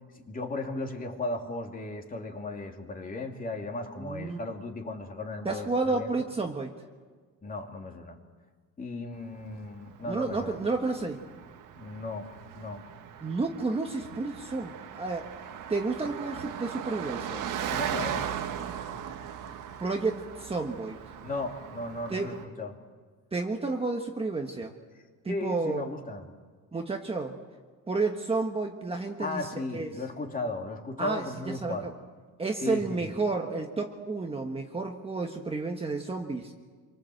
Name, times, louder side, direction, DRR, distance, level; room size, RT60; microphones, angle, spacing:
voice 1, 0.1-6.3 7.4-8.2 8.8-10.6 11.8-12.9 17.7-18.3 21.2-22.7 25.3-26.3 29.2-31.9 32.6-33.1, left 2 dB, 25° left, 2 dB, 2.8 m, -36 dB
voice 2, 4.0-4.4 5.4-6.7 10.1-11.2 13.2-15.3 15.7-17.4 19.8-21.0 22.1-22.3 23.3-24.7 25.2-25.9 26.7-27.4 27.9-29.9 31.0-31.9 32.4-36.5, right 3 dB, 15° right, 2 dB, 1.5 m, -31 dB
Car passing by, 9.2-22.4, right 9 dB, 60° right, 1.7 m, -38 dB
27.5 x 24.0 x 7.9 m, 1.5 s
cardioid pair, 165°, 36 cm